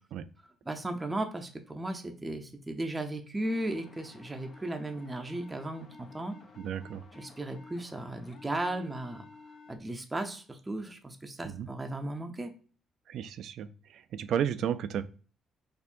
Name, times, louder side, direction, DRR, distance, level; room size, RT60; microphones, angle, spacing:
voice 1, 0.7-6.3 7.2-9.3 9.7-12.5, right 1 dB, 15° right, 4 dB, 0.6 m, -36 dB
sound 1, 3.4-9.8, left 4 dB, 55° left, 0.7 m, -53 dB
voice 2, 6.6-7.0 11.5-11.7 13.1-15.0, right 9 dB, 70° right, 13 dB, 0.3 m, -33 dB
4.3 x 2.6 x 2.6 m, 0.40 s
cardioid pair, 115°, 0 cm